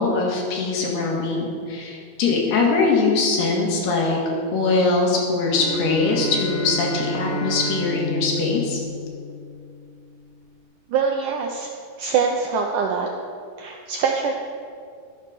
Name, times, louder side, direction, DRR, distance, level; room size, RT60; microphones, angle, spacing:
voice 1, 0.0-4.2 4.5-8.8, left 3 dB, 80° left, -1 dB, 3.8 m, -22 dB
Bowed string instrument, 5.4-9.8, left 1 dB, 20° left, 3.0 m, -30 dB
voice 2, 10.9-11.7 12.0-13.1 13.6-14.3, right 6 dB, 80° right, 1 dB, 1.9 m, -23 dB
12.0 x 8.7 x 6.3 m, 2.3 s
omnidirectional pair, 4.6 m